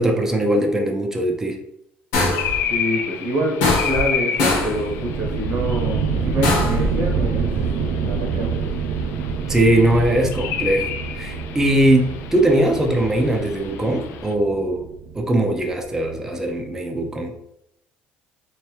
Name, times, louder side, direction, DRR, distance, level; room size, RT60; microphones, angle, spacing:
voice 1, 0.0-1.6 9.5-10.9 11.1-14.8 15.1-17.3, right 1 dB, 10° right, 1 dB, 0.5 m, -20 dB
sound 1, 2.1-2.6 3.6-4.1 4.4-4.8 6.4-6.9, left 2 dB, 90° left, 1.2 m, -21 dB
sound 2, 2.3-14.3, left 8 dB, 75° left, 0.3 m, -31 dB
voice 2, 2.7-7.5 8.0-8.5, right 1 dB, 85° right, 0 dB, 1.2 m, -26 dB
sound 3, 4.7-16.1, right 5 dB, 65° right, 0.4 m, -27 dB
3.2 x 2.9 x 3.2 m, 0.77 s
cardioid pair, 105°, 4 cm